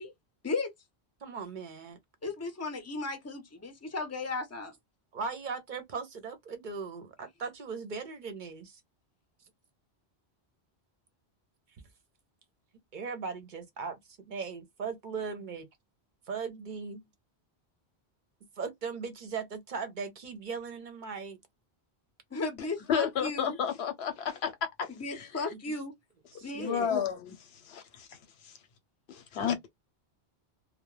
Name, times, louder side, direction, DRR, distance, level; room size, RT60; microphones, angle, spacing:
voice 1, 1.2-2.3 5.1-8.8 12.9-14.0 14.3-15.7 16.3-17.0 18.6-21.4 25.5-25.8 26.3-26.9, right 5 dB, 55° right, 0.7 m, -38 dB
voice 2, 2.2-4.7 22.3-23.6 25.0-25.9 26.4-26.7, left 3 dB, 20° left, 0.5 m, -35 dB
voice 3, 22.6-25.4 26.5-27.4 27.7-28.2 28.4-28.5 29.1-29.6, left 8 dB, 80° left, 0.9 m, -32 dB
2.2 x 2.1 x 3.1 m
omnidirectional pair, 1.1 m